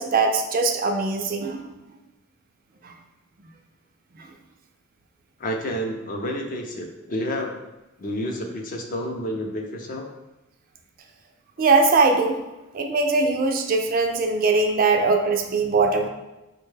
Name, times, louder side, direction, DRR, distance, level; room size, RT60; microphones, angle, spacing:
voice 1, 0.0-1.7 2.8-2.9 11.6-12.4 12.7-16.1, right 3 dB, 40° right, 4 dB, 0.3 m, -21 dB
voice 2, 5.4-7.6 8.0-10.1, equal, 40° left, 2 dB, 0.5 m, -30 dB
4.5 x 2.2 x 3.2 m, 1.0 s
head